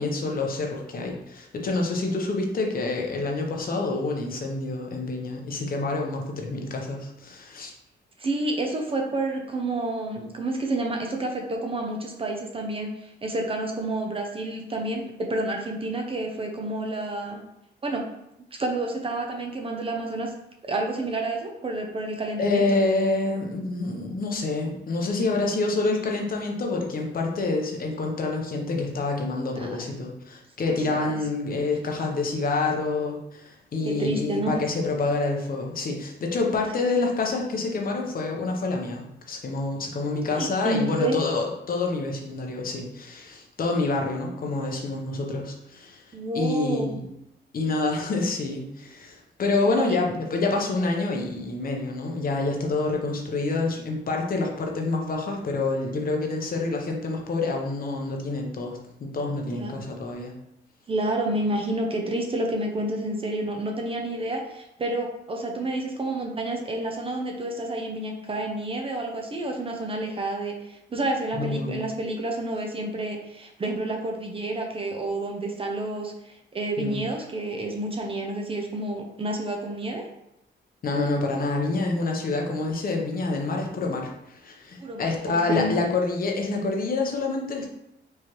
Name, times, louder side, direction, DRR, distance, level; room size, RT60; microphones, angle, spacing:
voice 1, 0.0-7.7 22.4-47.0 47.5-60.4 71.3-71.9 76.8-77.0 80.8-87.7, left 3 dB, 45° left, 1 dB, 0.8 m, -27 dB
voice 2, 8.2-17.4 17.8-18.1 18.5-20.3 20.6-22.6 29.5-29.8 30.7-31.2 33.8-34.6 40.4-41.2 46.1-46.9 49.7-49.8 59.5-59.7 60.9-80.1 84.8-85.7, right 2 dB, 30° right, 2 dB, 0.6 m, -29 dB
4.7 x 3.2 x 3.0 m, 0.83 s
cardioid pair, 135°, 20 cm